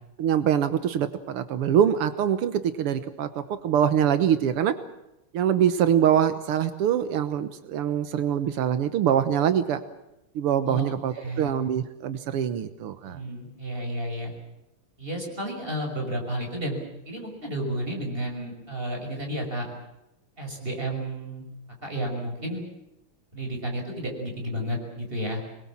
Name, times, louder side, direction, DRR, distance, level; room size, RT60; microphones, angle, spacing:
voice 1, 0.2-4.8 5.3-9.8 10.4-13.2, right 9 dB, 90° right, 11 dB, 2.1 m, -24 dB
voice 2, 10.6-11.5 13.1-14.3 15.0-16.8 17.0-19.7 20.4-21.4 21.8-22.6 23.3-25.4, right 1 dB, 25° right, 2 dB, 6.1 m, -32 dB
25.5 x 21.5 x 7.4 m, 0.89 s
omnidirectional pair, 2.4 m